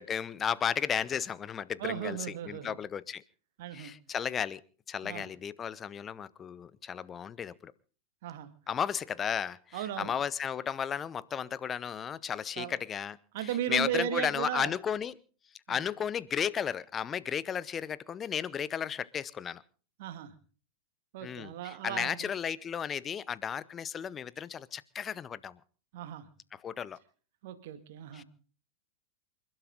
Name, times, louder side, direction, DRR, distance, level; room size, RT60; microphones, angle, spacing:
voice 1, 0.0-3.2 3.7-4.6 4.9-7.7 8.7-15.2 15.7-19.6 21.2-25.6 26.5-27.0 28.1-28.2, left 8 dB, 25° left, 0.8 m, -34 dB
voice 2, 1.8-2.8 3.6-3.9 5.0-5.3 8.2-8.5 9.7-10.1 12.6-12.8 13.3-14.7 15.7-15.8 20.0-20.3 21.1-22.3 25.9-26.3 27.4-28.2, right 11 dB, 50° right, 2.1 m, -36 dB
28.0 x 12.0 x 3.8 m
figure-of-eight pair, 90°, 0 cm